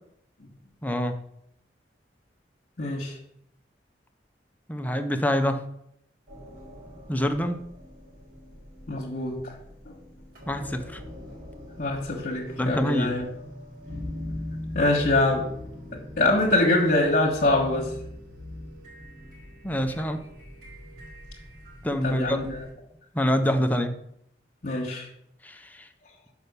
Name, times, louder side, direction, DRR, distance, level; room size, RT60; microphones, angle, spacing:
voice 1, 0.8-1.2 4.7-5.7 7.1-7.6 10.4-11.0 12.6-13.1 19.6-20.2 21.8-22.5 23.1-24.0 25.4-25.9, equal, 10° left, 6 dB, 0.7 m, -26 dB
voice 2, 2.8-3.2 8.9-9.5 9.8-10.0 11.8-13.3 14.7-15.5 15.9-18.0 22.0-22.7 24.6-25.1, left 2 dB, 50° left, -4 dB, 1.5 m, -24 dB
sound 1, 6.3-22.7, left 1 dB, 55° right, 3.6 m, -41 dB
6.3 x 5.5 x 6.7 m, 0.74 s
head